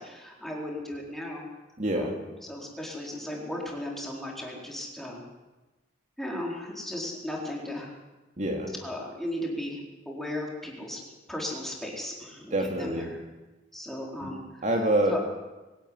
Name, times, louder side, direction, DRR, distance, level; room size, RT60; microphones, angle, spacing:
voice 1, 0.0-1.4 1.9-5.2 6.2-7.9 8.8-9.8 10.1-11.0 11.3-13.2 13.7-14.7 15.1-15.3, left 1 dB, ahead, -2 dB, 4.3 m, -36 dB
voice 2, 1.8-2.1 8.4-8.7 12.5-13.1 14.2-14.3 14.6-15.3, right 1 dB, 40° right, 1 dB, 2.5 m, -26 dB
22.0 x 12.5 x 9.8 m, 1.1 s
head